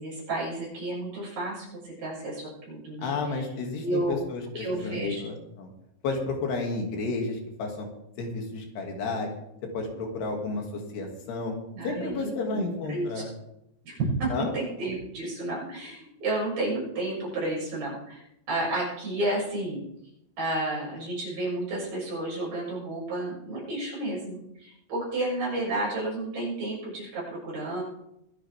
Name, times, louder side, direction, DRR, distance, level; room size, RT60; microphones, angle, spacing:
voice 1, 0.0-3.4 3.8-4.2 4.6-5.2 11.7-12.6 12.9-13.2 13.8-14.2 14.5-19.8 20.4-27.8, right 2 dB, 60° right, -5 dB, 8.7 m, -31 dB
voice 2, 3.0-5.7 6.0-7.9 8.2-9.3 9.7-11.6 11.8-13.3 14.3-14.5, left 3 dB, 70° left, 1 dB, 4.5 m, -32 dB
23.0 x 10.5 x 3.6 m, 0.81 s
omnidirectional pair, 4.9 m